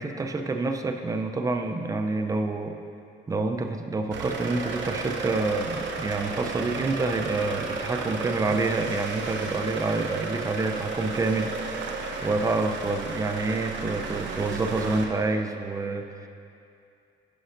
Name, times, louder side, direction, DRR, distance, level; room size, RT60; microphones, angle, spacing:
voice 1, 0.0-2.8 3.3-11.8 12.2-16.3, right 3 dB, 15° right, 5 dB, 0.4 m, -28 dB
sound 1, 4.1-15.1, right 4 dB, 70° right, 0.7 m, -33 dB
9.6 x 6.1 x 2.5 m, 2.5 s
cardioid pair, 90°, 20 cm